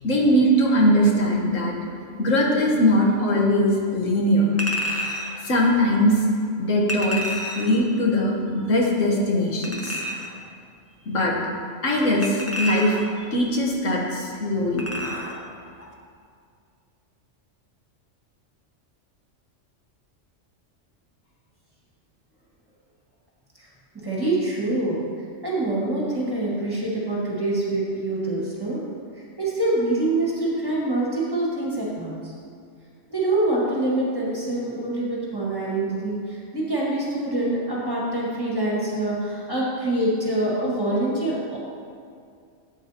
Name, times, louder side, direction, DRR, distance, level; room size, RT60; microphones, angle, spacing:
voice 1, 0.0-1.7 2.2-4.5 5.4-6.2 6.6-7.3 7.6-10.0 11.1-11.3 11.8-14.8, equal, 85° left, -2 dB, 1.6 m, -21 dB
Chink clink, 4.6-5.4 6.9-7.8 9.6-10.4 12.2-13.2 14.8-15.4 15.8-15.9, equal, 15° left, 0.6 m, -30 dB
voice 2, 24.0-25.0 25.4-28.8 29.4-32.3 33.1-41.6, right 2 dB, 20° right, -6 dB, 1.8 m, -25 dB
12.0 x 7.9 x 2.9 m, 2.3 s
omnidirectional pair, 1.3 m